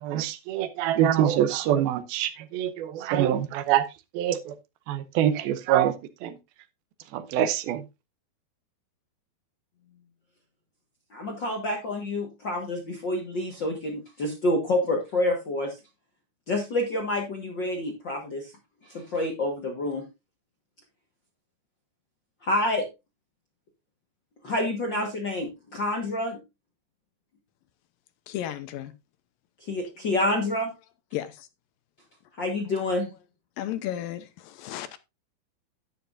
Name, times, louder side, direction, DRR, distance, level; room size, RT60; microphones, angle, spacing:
voice 1, 0.0-3.9 4.1-4.6 4.9-5.9 6.2-6.4 7.1-7.8, right 11 dB, 85° right, 2.8 m, -25 dB
voice 2, 11.1-15.8 16.5-18.5 18.8-20.0 22.4-22.8 24.4-26.4 29.6-30.7 32.4-33.1, left 1 dB, 55° left, 1.2 m, -28 dB
voice 3, 28.3-28.9 30.0-30.1 31.1-31.5 33.6-35.0, left 12 dB, 75° left, 2.4 m, -34 dB
11.5 x 9.7 x 2.5 m
omnidirectional pair, 4.3 m